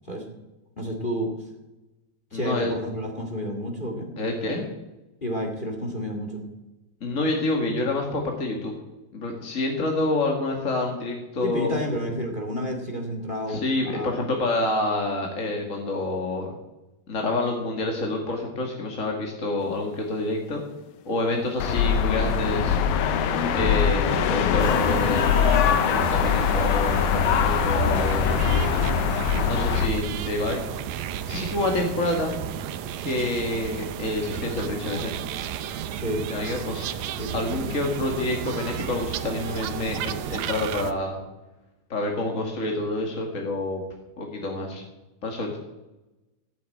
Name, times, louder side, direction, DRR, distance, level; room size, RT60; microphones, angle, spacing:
voice 1, 0.8-1.3 2.3-4.1 5.2-6.4 11.4-14.1 35.9-36.3 37.2-37.7, equal, 20° left, 3 dB, 1.4 m, -30 dB
voice 2, 2.3-2.7 4.2-4.7 7.0-8.7 9.1-11.8 13.5-16.5 17.1-20.7 21.0-22.8 23.5-28.9 29.4-30.6 31.3-32.3 33.0-35.1 36.3-36.9 37.3-41.2 41.9-43.8 44.2-44.8 45.2-45.6, left 2 dB, 35° left, 1 dB, 1.2 m, -28 dB
sound 1, 21.6-29.9, left 7 dB, 75° left, 2.6 m, -22 dB
sound 2, 24.6-40.9, right 9 dB, 80° right, 1.6 m, -33 dB
15.0 x 7.5 x 9.0 m, 1.0 s
omnidirectional pair, 4.3 m